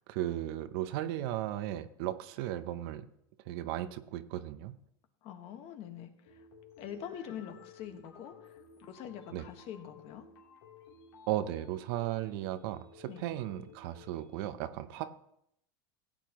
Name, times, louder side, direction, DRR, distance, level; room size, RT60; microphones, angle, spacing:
voice 1, 0.1-3.1 3.5-4.8 9.3-9.5 11.3-15.1, right 13 dB, 65° right, 12 dB, 0.8 m, -36 dB
voice 2, 5.2-6.5 6.8-10.3 13.0-13.2, left 9 dB, 50° left, 6 dB, 1.5 m, -45 dB
sound 1, 6.3-14.4, left 4 dB, 85° left, 3.3 m, -56 dB
17.0 x 8.9 x 3.1 m, 0.76 s
supercardioid pair, 125°, 13 cm